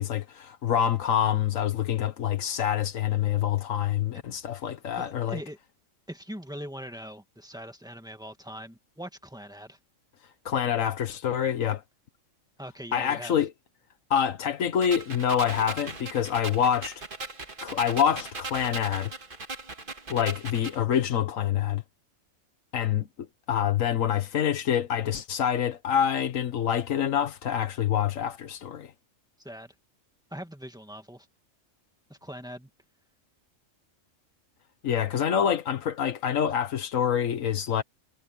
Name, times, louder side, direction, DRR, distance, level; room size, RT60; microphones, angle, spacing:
voice 1, 0.0-5.4 10.4-11.8 12.9-13.5 14.1-17.0 17.6-19.1 20.1-21.8 22.7-23.1 23.5-28.9 34.8-37.8, left 9 dB, 85° left, 1.4 m, -26 dB
voice 2, 5.0-5.6 6.1-9.8 12.6-13.4 29.4-29.7 30.3-31.3 32.1-32.7, equal, 5° right, 2.0 m, -41 dB
sound 1, 14.8-20.8, right 3 dB, 40° right, 2.1 m, -39 dB
omnidirectional pair, 1.4 m